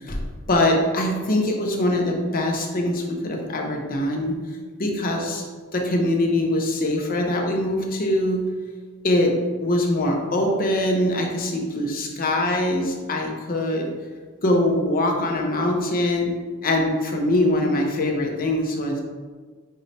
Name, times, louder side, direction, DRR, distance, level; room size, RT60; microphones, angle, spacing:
voice 1, 0.5-4.4 4.8-5.4 5.7-8.4 9.0-13.9 14.4-16.3 16.6-19.0, left 1 dB, 40° left, 1 dB, 0.7 m, -23 dB
5.4 x 2.6 x 3.2 m, 1.4 s
head